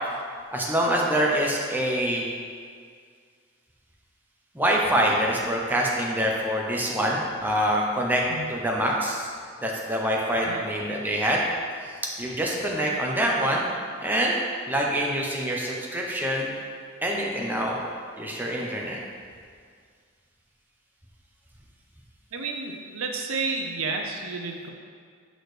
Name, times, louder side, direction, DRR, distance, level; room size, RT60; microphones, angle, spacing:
voice 1, 0.5-2.2 4.5-8.2 8.5-9.3 9.6-11.4 12.2-13.7 14.0-14.4 14.7-16.5 17.0-17.8 18.2-19.0, equal, 10° right, -3 dB, 0.7 m, -25 dB
voice 2, 22.3-24.7, right 3 dB, 85° right, 2 dB, 0.7 m, -31 dB
6.3 x 6.2 x 3.3 m, 2.1 s
head